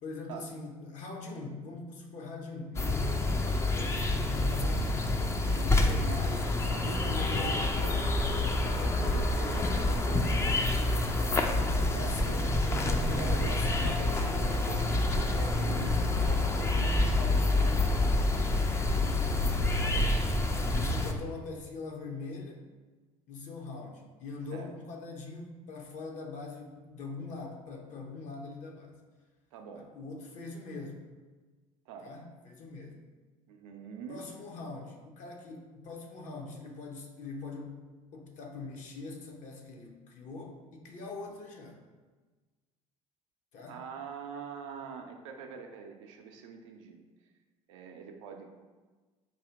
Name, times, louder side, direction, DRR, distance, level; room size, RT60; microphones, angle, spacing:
voice 1, 0.0-4.5 5.4-6.4 6.7-7.8 8.7-9.0 11.7-12.5 12.8-13.9 18.9-19.4 19.9-22.6 23.3-29.0 29.8-31.0 32.0-33.0 34.1-37.8 38.1-41.8 43.5-43.8, left 3 dB, 45° left, 2 dB, 0.8 m, -43 dB
sound 1, 2.8-21.1, left 2 dB, 15° left, 0.5 m, -27 dB
voice 2, 4.5-4.8 6.3-8.2 8.7-12.4 12.8-18.3 19.8-20.1 24.5-24.7 29.5-29.9 31.9-32.1 33.5-34.3 43.7-47.0 47.7-48.5, right 6 dB, 65° right, 4 dB, 0.5 m, -44 dB
4.1 x 2.7 x 4.8 m, 1.3 s
figure-of-eight pair, 60°, 17 cm